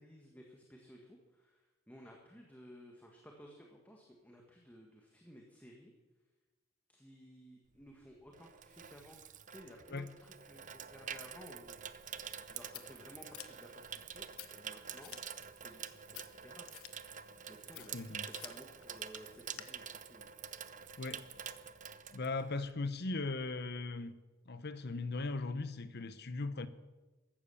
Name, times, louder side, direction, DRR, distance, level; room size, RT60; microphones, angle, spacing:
voice 1, 0.0-5.9 6.9-11.8 12.5-15.2 15.5-16.7 17.5-20.3, equal, 5° left, 1.6 m, -56 dB
Water tap faucet / Sink (filling or washing), 7.8-22.9 23.1-23.4, right 8 dB, 35° right, 0.6 m, -47 dB
Scissors, 12.2-19.6, left 12 dB, 80° left, 1.2 m, -55 dB
voice 2, 17.9-18.3 21.0-21.2 22.1-24.2 24.5-26.7, left 3 dB, 50° left, 0.9 m, -38 dB
14.5 x 12.0 x 7.0 m
head